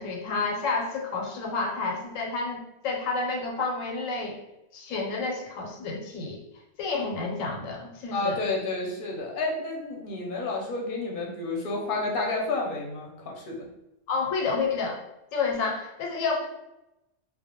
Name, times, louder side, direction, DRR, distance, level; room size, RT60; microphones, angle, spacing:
voice 1, 0.0-4.4 4.7-6.4 6.8-8.4 14.1-15.0 15.3-16.5, left 4 dB, 90° left, 0 dB, 1.0 m, -30 dB
voice 2, 8.1-13.7, left 3 dB, 55° left, -1 dB, 0.6 m, -30 dB
2.1 x 2.1 x 2.8 m, 0.92 s
omnidirectional pair, 1.3 m